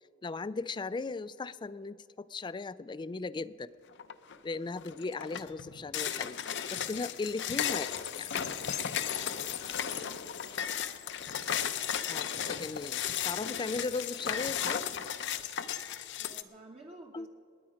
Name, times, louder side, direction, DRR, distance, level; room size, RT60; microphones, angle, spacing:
voice 1, 0.2-3.7 4.4-6.4 6.7-8.3 12.1-14.9 17.1-17.3, left 3 dB, 25° left, 17 dB, 0.3 m, -37 dB
sound 1, 4.0-4.4 4.8-16.4, left 9 dB, 60° left, 0.7 m, -35 dB
voice 2, 9.4-11.0 16.2-17.3, right 2 dB, 30° right, 0 dB, 1.0 m, -53 dB
28.5 x 9.8 x 5.1 m, 2.5 s
head